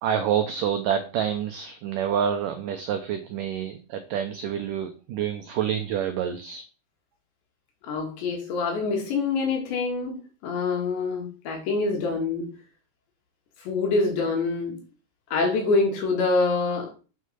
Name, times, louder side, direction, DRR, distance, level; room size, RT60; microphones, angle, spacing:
voice 1, 0.0-6.6, right 9 dB, 90° right, 1.9 m, -27 dB
voice 2, 7.8-10.2 10.4-12.5 13.7-14.8 15.3-16.9, left 3 dB, 80° left, 4.9 m, -25 dB
8.6 x 6.5 x 5.4 m
omnidirectional pair, 5.0 m